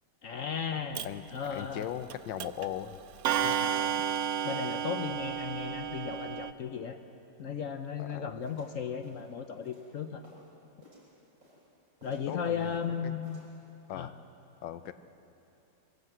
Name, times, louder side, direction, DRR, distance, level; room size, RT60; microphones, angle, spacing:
voice 1, 0.2-1.1 1.3-1.9 3.4-4.0 4.4-7.0 7.4-10.2 12.0-13.4 13.9-14.1, left 7 dB, 60° left, 7 dB, 0.9 m, -36 dB
Clock, 0.9-1.1 2.1-2.2 2.4-2.7 3.2-6.5, right 9 dB, 80° right, 0.6 m, -31 dB
voice 2, 1.5-3.0 3.4-3.5 8.0-8.4 12.3-13.1 13.9-14.1 14.6-14.9, left 11 dB, 80° left, 12 dB, 1.4 m, -39 dB
sound 1, 8.4-10.5 10.8-11.7 12.0-12.9 13.2-13.5, equal, 50° right, 5.0 m, -59 dB
22.5 x 15.5 x 7.9 m, 2.9 s
omnidirectional pair, 2.0 m